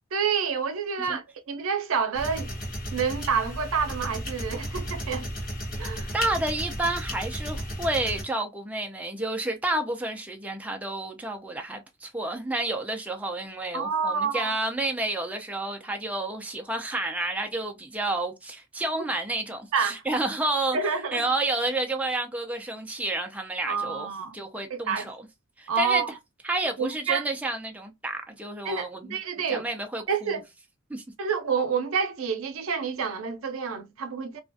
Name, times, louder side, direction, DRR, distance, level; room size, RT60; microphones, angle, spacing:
voice 1, 0.1-2.5 2.9-5.3 5.8-6.1 13.7-14.5 19.7-20.0 20.7-21.2 23.7-24.4 24.7-25.0 25.7-26.1 26.8-27.2 28.6-29.7 30.1-30.4 31.2-34.4, right 6 dB, 75° right, 0.5 m, -28 dB
sound 1, 2.1-8.2, equal, 40° left, 1.1 m, -34 dB
voice 2, 6.1-20.8 21.1-25.2 25.6-26.0 26.4-29.2 29.5-30.4 30.9-31.0, right 2 dB, 5° right, 0.4 m, -30 dB
2.4 x 2.2 x 2.5 m
head